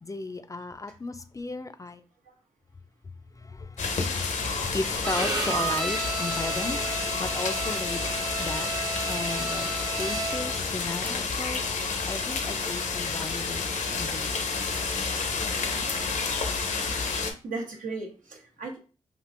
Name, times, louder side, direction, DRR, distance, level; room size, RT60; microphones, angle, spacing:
voice 1, 0.0-2.0 3.4-6.8 7.2-8.0 8.4-8.7 9.1-9.7 10.0-11.6 12.1-14.5, left 3 dB, 25° left, 0.3 m, -35 dB
sound 1, 3.8-17.3, left 4 dB, 70° left, 0.6 m, -30 dB
Bowed string instrument, 5.0-10.6, right 4 dB, 30° right, 0.9 m, -32 dB
voice 2, 16.5-17.1 17.4-18.8, right 3 dB, 75° right, 0.9 m, -37 dB
3.5 x 2.5 x 2.5 m
cardioid pair, 50°, 14 cm